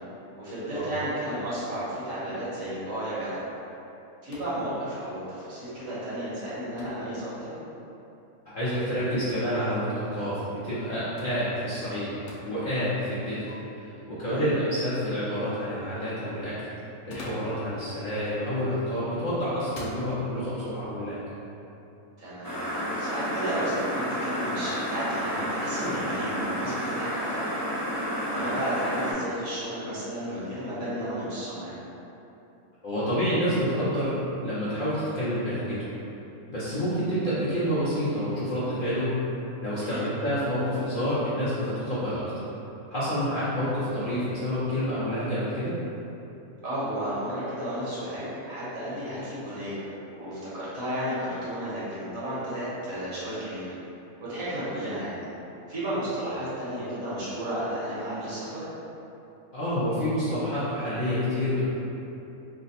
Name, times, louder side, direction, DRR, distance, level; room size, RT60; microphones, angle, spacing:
voice 1, 0.4-3.4 4.2-7.5 14.2-14.5 22.2-27.5 28.3-31.7 39.8-40.0 46.6-53.7 54.2-55.2 55.7-58.7, right 1 dB, 65° right, -10 dB, 1.4 m, -33 dB
sound 1, 4.3-4.6 6.8-7.1 9.1-9.5 11.2-11.4 12.3-12.5 13.5-13.6 16.9-17.6 18.7-19.0 19.6-20.0, left 1 dB, 75° left, 1.1 m, -43 dB
voice 2, 8.5-12.1 12.4-13.4 13.8-16.5 17.1-21.2 32.8-34.2 34.4-35.9 36.5-39.2 39.6-42.2 42.9-45.7 59.5-61.6, equal, 50° left, -13 dB, 0.7 m, -28 dB
sound 2, 22.4-29.1, equal, 30° right, 0.3 m, -30 dB
3.2 x 2.1 x 4.0 m, 3.0 s
omnidirectional pair, 1.6 m